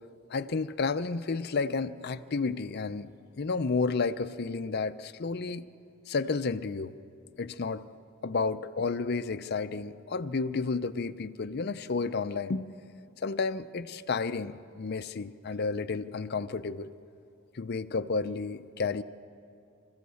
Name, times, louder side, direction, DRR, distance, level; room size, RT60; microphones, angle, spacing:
voice 1, 0.3-3.1 3.4-5.7 6.1-6.9 7.4-7.9 8.2-12.7 13.2-16.9 17.5-19.0, left 4 dB, 50° left, 10 dB, 0.5 m, -31 dB
28.0 x 14.5 x 7.0 m, 2.5 s
head